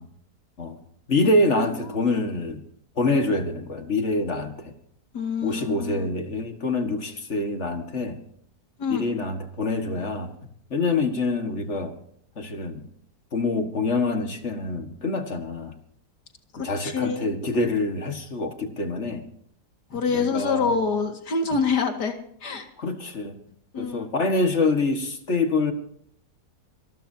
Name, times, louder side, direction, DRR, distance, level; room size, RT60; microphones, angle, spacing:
voice 1, 1.1-2.6 3.0-4.7 5.4-8.2 8.9-10.3 10.7-11.9 12.4-12.8 13.3-15.8 16.6-19.2 20.1-20.7 22.8-23.4 23.8-25.7, left 2 dB, 45° left, 6 dB, 2.0 m, -25 dB
voice 2, 5.1-6.1 8.8-9.1 16.5-17.3 19.9-22.7 23.7-24.1, left 5 dB, 75° left, 5 dB, 2.6 m, -26 dB
25.5 x 13.0 x 2.8 m, 0.68 s
omnidirectional pair, 1.8 m